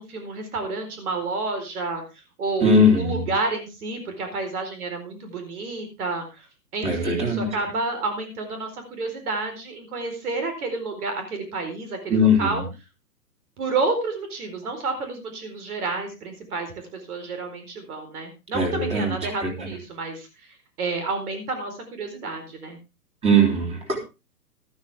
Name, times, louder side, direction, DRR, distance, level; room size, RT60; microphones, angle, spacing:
voice 1, 0.0-6.5 6.7-12.6 13.6-22.8, right 3 dB, 60° right, 6 dB, 4.5 m, -30 dB
voice 2, 2.6-3.3 6.8-7.5 12.1-12.6 18.5-19.7 23.2-24.0, left 1 dB, 10° right, 2 dB, 3.4 m, -20 dB
13.0 x 13.0 x 3.5 m, 0.29 s
hypercardioid pair, 145°, 50 cm